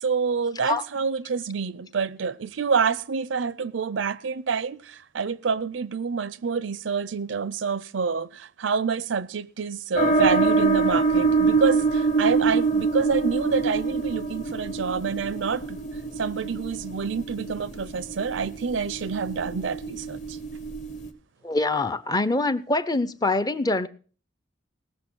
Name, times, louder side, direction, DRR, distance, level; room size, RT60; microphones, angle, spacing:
voice 1, 0.0-15.8 16.2-20.4, right 5 dB, 80° right, 0.5 m, -27 dB
sound 1, 10.0-21.1, right 4 dB, 40° left, 1.2 m, -25 dB
voice 2, 21.4-23.9, left 2 dB, 20° left, 0.5 m, -24 dB
18.5 x 6.8 x 6.1 m
head